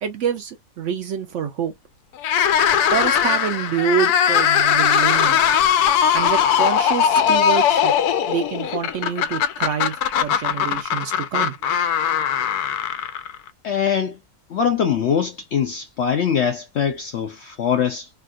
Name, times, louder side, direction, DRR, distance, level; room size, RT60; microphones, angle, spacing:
voice 1, 0.0-1.7 2.9-5.5 6.1-7.9 8.3-11.5, right 8 dB, 65° right, 0.8 m, -26 dB
sound 1, 2.2-13.5, left 8 dB, 85° left, 1.1 m, -19 dB
voice 2, 13.6-14.2 14.5-18.1, left 7 dB, 65° left, 0.6 m, -22 dB
3.4 x 2.3 x 2.4 m
omnidirectional pair, 1.6 m